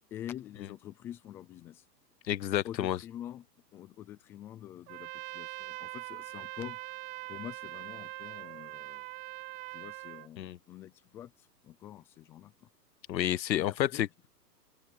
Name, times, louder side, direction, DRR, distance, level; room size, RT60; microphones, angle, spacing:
voice 1, 0.1-1.8 2.6-3.5 3.7-6.8 7.3-9.1 9.7-12.7 13.5-14.0, left 11 dB, 5° left, 0.4 m, -46 dB
voice 2, 2.2-3.0 10.4-10.6 13.1-14.1, left 12 dB, 85° left, 0.6 m, -30 dB
Trumpet, 4.9-10.3, right 23 dB, 35° right, 1.0 m, -42 dB
open air
hypercardioid pair, 120°, 50 cm